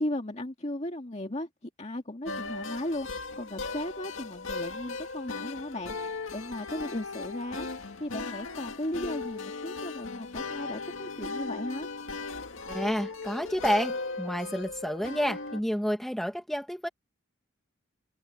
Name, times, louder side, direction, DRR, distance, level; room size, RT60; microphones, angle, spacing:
voice 1, 0.0-1.5 1.8-11.9, left 1 dB, 35° left, 2.1 m, -36 dB
sound 1, 2.2-15.6, left 3 dB, 75° left, 1.9 m, -37 dB
voice 2, 12.7-16.9, equal, ahead, 1.7 m, -30 dB
head